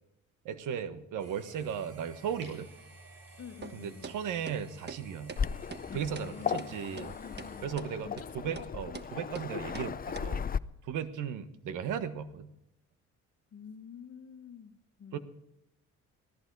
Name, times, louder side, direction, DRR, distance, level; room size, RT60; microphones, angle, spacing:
voice 1, 0.4-2.7 3.7-5.4 5.9-7.1 7.6-10.5 10.8-12.5 15.1-15.2, right 8 dB, 85° right, 11 dB, 1.4 m, -36 dB
sound 1, 1.2-7.7, right 2 dB, 55° right, 7.6 m, -53 dB
voice 2, 3.4-4.2 6.2-7.7 8.0-8.6 13.5-15.2, left 7 dB, 50° left, 8 dB, 1.7 m, -48 dB
sound 2, 3.6-3.7 4.0-4.2 4.5-4.6 4.9-5.0 5.3-5.4 5.7-5.8 6.2-6.3 6.6-6.7 7.0-7.1 7.4-7.5 7.8-7.9 8.2-8.3 8.6-8.7 8.9-9.1 9.3-9.5 9.7-9.9 10.1-10.2, right 5 dB, 35° right, 1.3 m, -43 dB
Waves surf, 5.4-10.6, left 7 dB, 30° left, 0.6 m, -36 dB
17.5 x 14.0 x 4.7 m, 0.84 s
cardioid pair, 90°, 30 cm